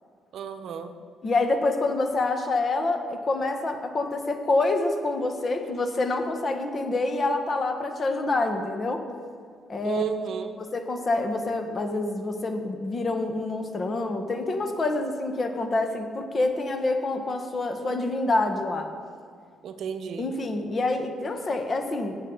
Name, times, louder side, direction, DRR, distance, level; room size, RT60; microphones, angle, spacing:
voice 1, 0.3-1.1 9.8-10.6 19.6-20.3, right 8 dB, 70° right, 8 dB, 0.7 m, -33 dB
voice 2, 1.2-9.0 9.7-10.0 10.6-18.9 20.2-22.2, left 2 dB, 40° left, 6 dB, 1.3 m, -27 dB
17.0 x 7.4 x 3.9 m, 2.2 s
cardioid pair, 90°, 0 cm